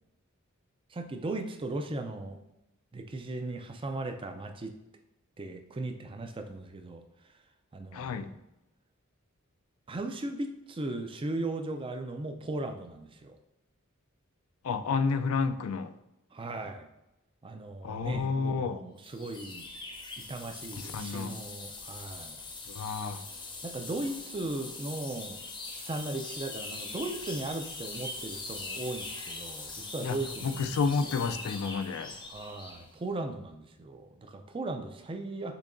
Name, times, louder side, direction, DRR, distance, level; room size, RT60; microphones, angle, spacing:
voice 1, 0.9-2.4 2.9-4.7 5.4-7.0 7.7-8.3 9.9-13.4 16.3-16.9 17.4-19.7 20.2-22.4 23.6-25.4 25.7-30.7 31.0-31.2 32.3-35.5, right 2 dB, 25° right, 5 dB, 0.4 m, -37 dB
voice 2, 7.9-8.3 14.6-15.9 17.8-18.8 20.8-21.4 22.7-23.3 30.0-32.1, left 5 dB, 80° left, 10 dB, 0.4 m, -30 dB
sound 1, 19.0-32.9, left 3 dB, 20° left, 0.6 m, -42 dB
6.8 x 2.8 x 2.6 m, 0.92 s
head